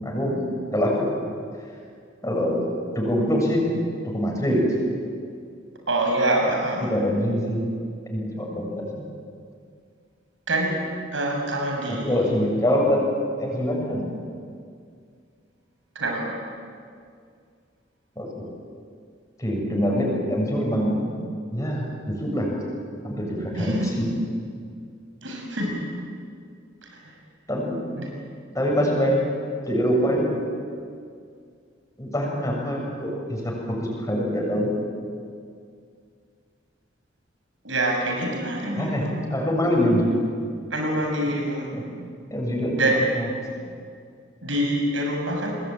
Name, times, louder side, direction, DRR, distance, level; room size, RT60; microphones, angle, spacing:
voice 1, 0.0-0.4 0.7-1.1 2.2-2.7 3.0-3.6 4.0-4.7 6.8-7.6 8.1-9.0 11.9-13.0 13.4-14.1 18.2-18.5 19.4-21.0 21.5-22.5 23.0-24.1 27.5-27.8 28.5-29.3 29.7-30.4 32.0-34.7 38.8-40.2 41.7-41.8 42.3-42.8, equal, 15° left, -2 dB, 7.0 m, -24 dB
voice 2, 5.9-6.9 10.5-10.7 11.1-12.2 16.0-16.3 23.6-23.9 25.2-25.8 26.8-26.9 28.0-28.1 37.6-39.1 40.7-41.7 42.8-43.1 44.4-45.6, right 1 dB, 85° right, 1 dB, 7.0 m, -25 dB
28.5 x 21.0 x 9.1 m, 2.2 s
head